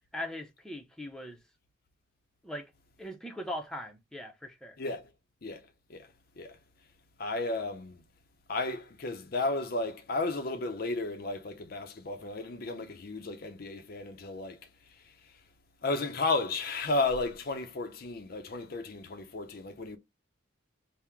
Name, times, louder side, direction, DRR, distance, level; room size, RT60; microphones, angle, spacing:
voice 1, 0.1-1.4 2.4-2.7 3.0-4.8, left 1 dB, 5° left, 0.5 m, -40 dB
voice 2, 4.8-5.1 5.4-6.1 6.4-6.6 7.2-8.0 8.5-14.6 15.0-15.1 15.8-20.0, left 3 dB, 50° left, 0.5 m, -33 dB
3.6 x 2.0 x 4.4 m
head